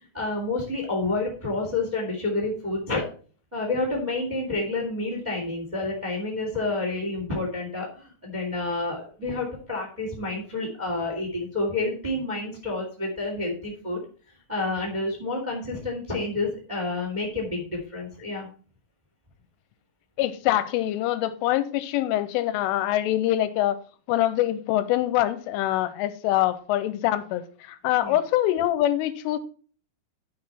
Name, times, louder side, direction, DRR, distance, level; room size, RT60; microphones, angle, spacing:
voice 1, 0.1-3.0 3.5-14.0 14.5-18.5 28.0-28.2, left 2 dB, 15° right, 1 dB, 1.4 m, -29 dB
voice 2, 20.2-23.8 24.1-29.4, left 13 dB, 85° left, 14 dB, 3.1 m, -24 dB
10.5 x 5.8 x 4.3 m, 0.41 s
omnidirectional pair, 5.8 m